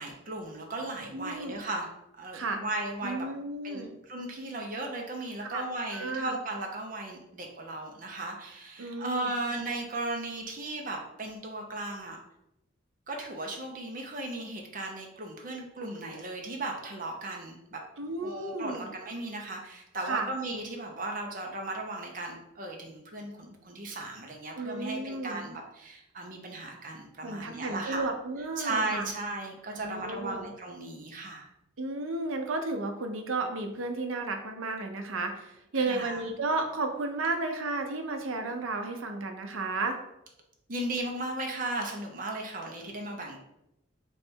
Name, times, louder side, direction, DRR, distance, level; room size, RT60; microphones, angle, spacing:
voice 1, 0.0-1.9 2.2-3.3 3.6-12.2 13.1-17.8 18.2-28.1 28.6-31.5 35.7-36.2 40.7-43.4, right 2 dB, 40° right, 1 dB, 0.7 m, -36 dB
voice 2, 1.1-1.6 2.3-2.6 3.0-4.0 5.4-5.6 5.9-6.4 8.8-9.3 18.0-18.8 20.0-20.3 24.6-25.4 27.2-29.1 29.7-30.4 31.8-40.0, right 3 dB, 85° right, 5 dB, 0.7 m, -33 dB
3.3 x 3.2 x 4.4 m, 0.84 s
head